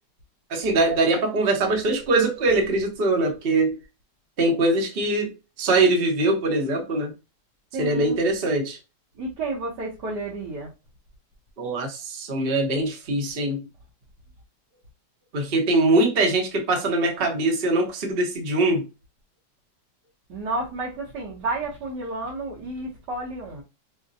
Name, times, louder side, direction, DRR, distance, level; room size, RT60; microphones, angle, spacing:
voice 1, 0.5-3.8 4.4-5.3 5.6-7.1 7.8-8.8 11.6-13.6 15.3-18.8, right 2 dB, 40° right, 0.9 m, -22 dB
voice 2, 7.7-8.2 9.2-10.7 20.3-23.6, right 2 dB, 70° right, 1.5 m, -31 dB
5.1 x 2.1 x 2.6 m
omnidirectional pair, 1.9 m